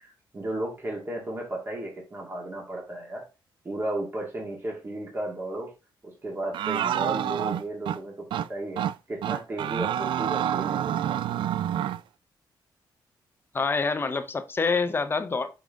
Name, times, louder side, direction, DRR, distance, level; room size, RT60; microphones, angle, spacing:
voice 1, 0.0-3.2 3.6-5.7 6.0-8.8 9.1-11.2, right 1 dB, 25° right, 2.0 m, -34 dB
sound 1, 6.5-8.0 8.3-8.5 8.8-8.9 9.2-12.0, right 10 dB, 80° right, 0.3 m, -28 dB
voice 2, 13.5-15.6, left 4 dB, 25° left, 0.7 m, -26 dB
5.4 x 4.9 x 3.6 m
wide cardioid pair, 135°, 8 cm